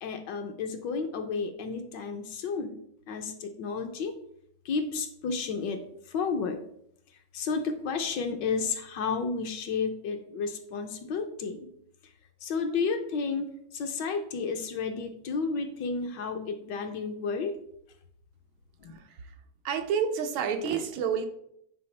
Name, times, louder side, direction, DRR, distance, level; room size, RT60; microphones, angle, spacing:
voice 1, 0.0-2.8 3.1-4.1 4.6-5.8 6.1-6.6 7.3-11.7 12.4-17.6 18.8-18.9, left 5 dB, 70° left, 6 dB, 1.3 m, -32 dB
voice 2, 18.9-19.3 19.6-21.3, right 7 dB, 80° right, 6 dB, 1.6 m, -29 dB
9.8 x 4.2 x 3.2 m, 0.71 s
omnidirectional pair, 2.2 m